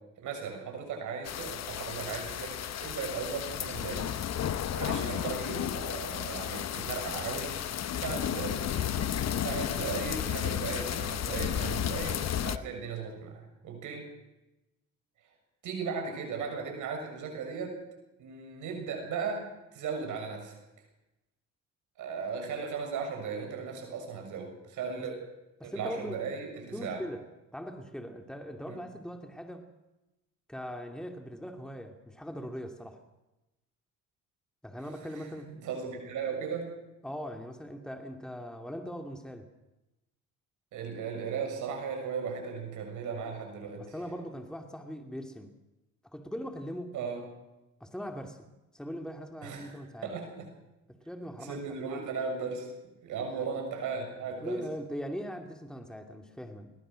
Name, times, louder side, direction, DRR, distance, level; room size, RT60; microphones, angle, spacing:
voice 1, 0.2-4.1 4.7-7.6 8.0-8.6 9.4-14.1 15.6-17.8 18.2-20.6 22.0-25.2 25.6-27.0 28.7-28.8 35.1-36.7 40.7-44.0 46.9-47.2 49.4-50.5 51.4-52.7 53.0-54.6, right 5 dB, 80° right, 3 dB, 7.0 m, -37 dB
sound 1, 1.2-12.6, left 9 dB, 60° left, 1.1 m, -33 dB
voice 2, 25.6-26.2 26.7-27.2 27.5-29.7 30.5-33.0 34.6-35.5 37.0-39.5 43.8-45.5 46.0-46.9 47.8-50.1 50.9-51.6 53.4-53.5 54.4-56.7, equal, ahead, 4 dB, 2.6 m, -40 dB
21.5 x 20.0 x 6.4 m, 0.97 s
cardioid pair, 90°, 30 cm